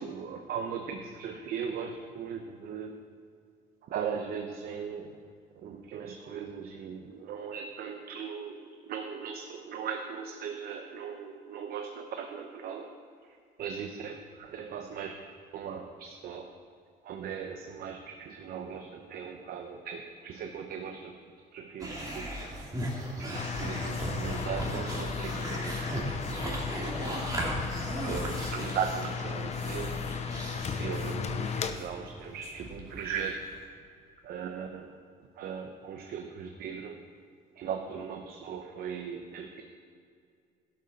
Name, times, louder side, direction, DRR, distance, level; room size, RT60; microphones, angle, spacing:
voice 1, 0.0-3.0 3.8-5.2 5.6-13.0 13.6-15.2 15.5-16.5 17.0-21.2 21.5-22.6 23.0-26.2 26.4-27.3 28.0-30.0 30.5-33.5 34.2-35.0 35.4-37.0 37.6-39.6, right 7 dB, 65° right, 5 dB, 0.9 m, -38 dB
sound 1, 21.8-33.5, right 1 dB, 20° right, 2.6 m, -37 dB
sound 2, 23.3-31.7, left 6 dB, 40° left, 0.8 m, -35 dB
12.0 x 12.0 x 4.2 m, 2.3 s
cardioid pair, 110°, 17 cm